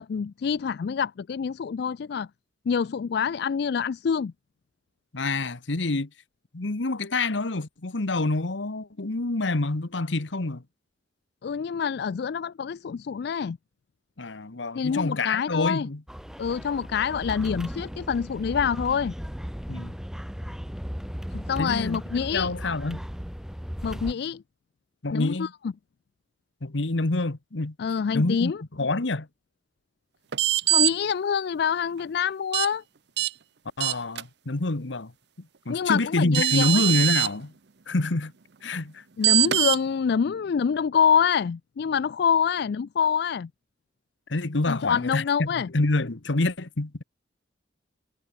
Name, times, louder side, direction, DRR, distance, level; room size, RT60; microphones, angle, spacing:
voice 1, 0.0-2.3 2.7-4.3 11.4-13.6 14.7-15.9 16.4-19.1 21.3-22.5 23.8-24.4 25.1-25.5 27.8-28.6 30.7-32.8 35.7-36.8 39.2-43.5 44.7-45.7, left 7 dB, 60° left, 0.4 m, -26 dB
voice 2, 5.1-6.1 6.5-10.6 14.2-16.0 19.7-19.9 21.6-22.0 22.3-23.0 25.0-25.5 26.6-27.7 28.1-28.5 28.8-29.3 33.8-35.1 35.4-37.5 37.9-38.3 38.6-39.0 44.3-45.5 45.7-47.0, left 2 dB, 80° left, 1.3 m, -27 dB
sound 1, 16.1-24.1, equal, 5° right, 1.6 m, -36 dB
sound 2, 30.3-30.9 32.5-32.7 33.2-33.3 33.8-34.2 35.9-36.0 36.3-37.3 39.2-39.8, right 15 dB, 60° right, 0.7 m, -22 dB
head